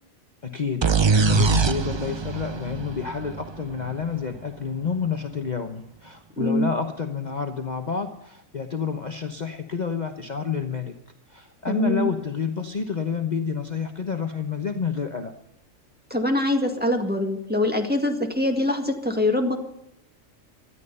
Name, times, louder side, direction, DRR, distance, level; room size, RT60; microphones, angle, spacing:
voice 1, 0.4-10.9 11.3-15.3, left 6 dB, 35° left, 5 dB, 1.1 m, -29 dB
sound 1, 0.8-4.5, right 5 dB, 45° right, 0.3 m, -23 dB
voice 2, 6.4-6.7 11.7-12.1 16.1-19.6, left 1 dB, 5° right, 2 dB, 1.9 m, -23 dB
18.5 x 13.0 x 5.5 m, 0.76 s
omnidirectional pair, 1.4 m